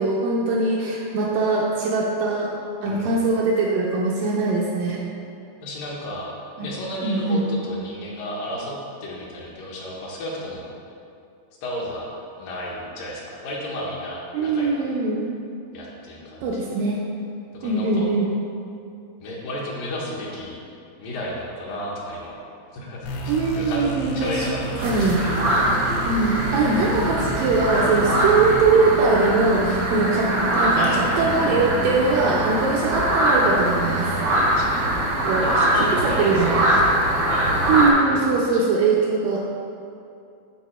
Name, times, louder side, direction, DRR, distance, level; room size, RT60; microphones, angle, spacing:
voice 1, 0.0-2.5 2.8-5.0 6.6-6.7 7.0-7.4 14.3-15.2 16.4-17.0 17.6-18.3 23.3-24.5 24.8-25.2 26.1-34.4 35.2-35.5 35.7-36.6 37.7-39.4, right 3 dB, 80° right, -3 dB, 2.1 m, -21 dB
voice 2, 5.6-6.3 6.6-8.7 9.0-10.6 11.6-12.1 12.4-14.9 15.7-16.7 17.5-18.1 19.2-20.6 21.0-22.4 22.7-25.4 30.7-31.5 34.5-34.8 35.4-37.5 38.1-38.7, left 1 dB, 70° left, -4 dB, 2.5 m, -33 dB
sound 1, 23.1-28.6, right 2 dB, 90° left, 2.8 m, -32 dB
sound 2, 24.8-37.9, right 1 dB, 55° right, 1.1 m, -22 dB
10.5 x 4.4 x 4.3 m, 2.5 s
omnidirectional pair, 4.4 m